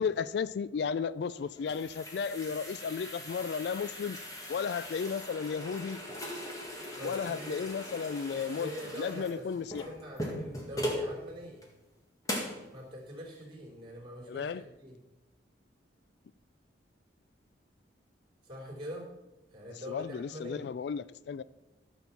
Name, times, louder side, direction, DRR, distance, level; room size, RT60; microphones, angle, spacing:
voice 1, 0.0-4.2 4.5-6.0 7.0-8.7 9.0-9.8 14.3-14.6 19.7-21.4, left 6 dB, 60° left, 0.3 m, -34 dB
sound 1, 1.3-11.1 11.6-11.7 12.2-12.6, equal, 20° left, 2.0 m, -40 dB
voice 2, 7.0-7.7 8.3-9.5 9.9-11.6 12.7-15.0 18.4-19.1 19.5-20.7, equal, 25° right, 3.8 m, -44 dB
13.5 x 7.1 x 5.9 m
head